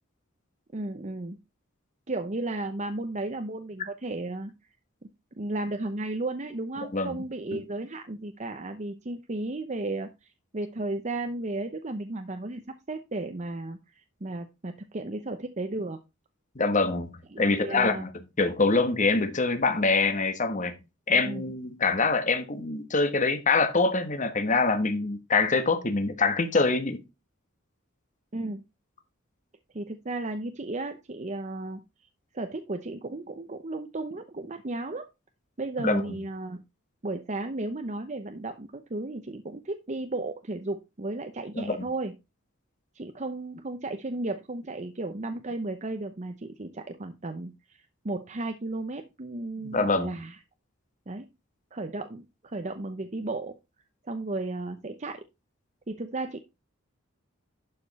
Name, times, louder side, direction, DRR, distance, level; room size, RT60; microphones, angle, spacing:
voice 1, 0.7-1.4 2.1-4.5 5.0-5.1 5.4-16.0 17.3-18.1 21.1-21.4 28.3-28.6 29.7-31.8 32.3-35.0 35.6-36.6 37.0-42.1 42.9-50.4 51.1-51.3 51.7-53.5 54.0-55.2 55.9-56.4, right 2 dB, 35° right, 0.8 m, -34 dB
voice 2, 16.5-18.1 18.4-20.8 21.1-27.0 35.8-36.0 41.5-41.8 49.6-50.1, left 3 dB, 35° left, 1.3 m, -25 dB
11.5 x 5.3 x 4.1 m
head